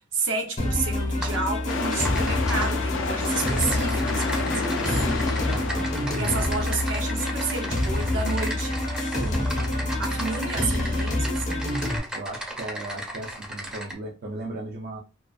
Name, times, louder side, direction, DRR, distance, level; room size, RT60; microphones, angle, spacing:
voice 1, 0.1-5.2 6.1-8.8 10.0-11.7, right 4 dB, 80° right, 0.8 m, -31 dB
sound 1, 0.6-12.0, left 1 dB, 40° left, 0.7 m, -27 dB
Typing, 1.2-1.4 1.7-2.7 3.2-13.9, right 1 dB, 5° right, 0.6 m, -36 dB
sound 2, 1.7-8.3, left 5 dB, 85° left, 0.3 m, -32 dB
voice 2, 5.5-5.9 9.1-9.6 12.1-15.0, right 2 dB, 50° right, 0.4 m, -36 dB
2.4 x 2.4 x 2.3 m
head